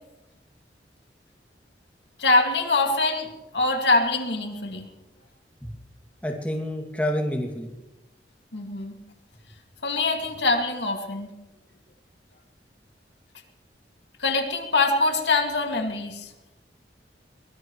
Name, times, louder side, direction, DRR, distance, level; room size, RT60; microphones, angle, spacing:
voice 1, 2.2-4.8 8.5-9.0 9.8-11.3 14.2-16.3, left 3 dB, 80° left, 3 dB, 2.3 m, -24 dB
voice 2, 6.2-7.7, equal, 10° left, 1 dB, 2.4 m, -28 dB
23.0 x 19.5 x 3.2 m, 1.0 s
head